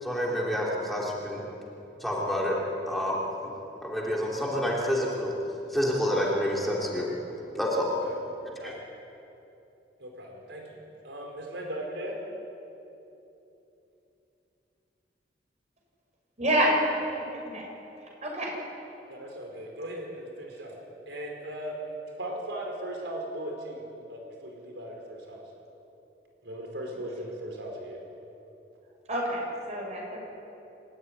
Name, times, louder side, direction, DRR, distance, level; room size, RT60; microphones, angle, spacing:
voice 1, 0.0-1.5 2.0-2.6 2.9-3.5 3.8-5.3 5.7-7.9 8.6-8.7, equal, ahead, -4 dB, 3.0 m, -28 dB
voice 2, 10.0-10.8 11.0-12.2 19.1-20.8 21.1-25.5 26.4-28.0, right 1 dB, 80° right, 1 dB, 4.5 m, -38 dB
voice 3, 16.4-16.8 17.1-17.6 18.2-18.5 29.1-30.2, right 1 dB, 40° right, -1 dB, 6.9 m, -28 dB
27.5 x 14.0 x 9.9 m, 3.0 s
head